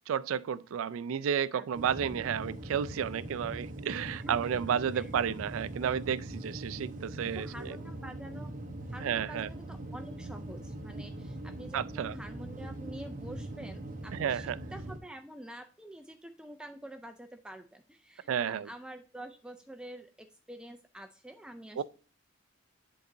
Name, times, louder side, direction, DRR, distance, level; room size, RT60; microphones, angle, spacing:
voice 1, 0.1-7.8 9.0-9.5 11.7-12.1 14.1-14.6 18.3-18.7 21.8-21.9, right 8 dB, 90° right, 0.3 m, -32 dB
voice 2, 1.5-1.9 4.2-4.5 4.9-5.1 7.3-8.5 8.9-21.8, right 1 dB, 5° right, 0.3 m, -47 dB
sound 1, 1.7-15.0, right 1 dB, 40° right, 0.6 m, -42 dB
10.5 x 3.9 x 2.6 m
head